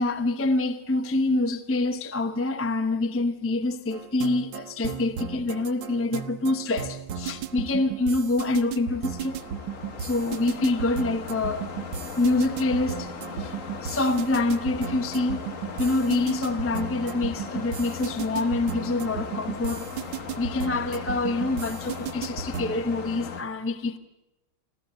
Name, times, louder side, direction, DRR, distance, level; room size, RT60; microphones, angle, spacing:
voice 1, 0.0-9.4 10.0-11.6 12.2-13.1 13.4-13.5 13.8-15.4 15.8-19.9 20.4-24.0, left 2 dB, 15° left, 0.6 m, -26 dB
sound 1, 3.9-22.8, right 8 dB, 80° right, 1.6 m, -35 dB
sound 2, 8.4-23.4, left 6 dB, 45° left, 1.5 m, -38 dB
26.0 x 15.0 x 7.8 m
omnidirectional pair, 2.1 m